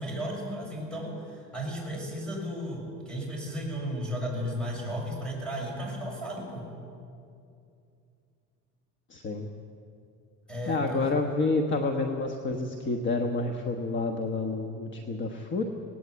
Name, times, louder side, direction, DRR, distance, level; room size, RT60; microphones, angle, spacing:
voice 1, 0.0-6.7 10.5-11.1, equal, 5° left, -2 dB, 6.7 m, -34 dB
voice 2, 9.1-9.5 10.7-15.6, left 3 dB, 35° left, 4 dB, 1.3 m, -29 dB
18.5 x 18.5 x 8.1 m, 2.5 s
cardioid pair, 150°, 32 cm